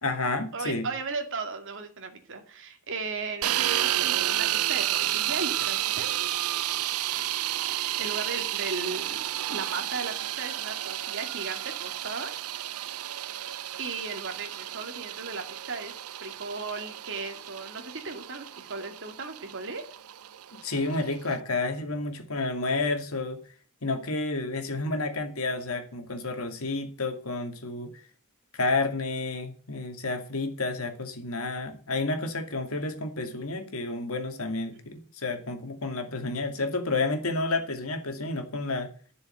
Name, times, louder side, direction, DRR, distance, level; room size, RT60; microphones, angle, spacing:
voice 1, 0.0-0.9 20.5-23.4 23.8-28.0 28.5-38.9, left 3 dB, 70° left, 6 dB, 2.4 m, -30 dB
voice 2, 0.5-6.1 7.1-7.2 7.6-12.3 13.8-15.9 16.2-19.8, right 4 dB, 60° right, 5 dB, 2.3 m, -36 dB
sound 1, 3.4-21.4, right 13 dB, 85° right, 0.5 m, -31 dB
11.0 x 7.0 x 7.9 m, 0.42 s
head